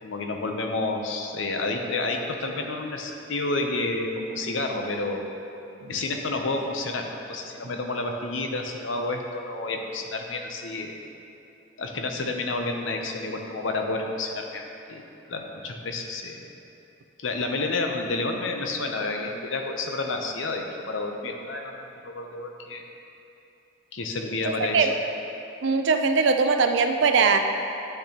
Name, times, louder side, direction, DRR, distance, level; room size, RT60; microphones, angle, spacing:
voice 1, 0.0-5.2 5.9-11.0 11.8-16.4 17.2-21.7 22.0-22.8 23.9-24.9, left 2 dB, 70° left, 3 dB, 0.7 m, -30 dB
voice 2, 25.6-27.4, right 4 dB, 65° right, 6 dB, 0.5 m, -21 dB
10.0 x 6.6 x 3.0 m, 2.9 s
head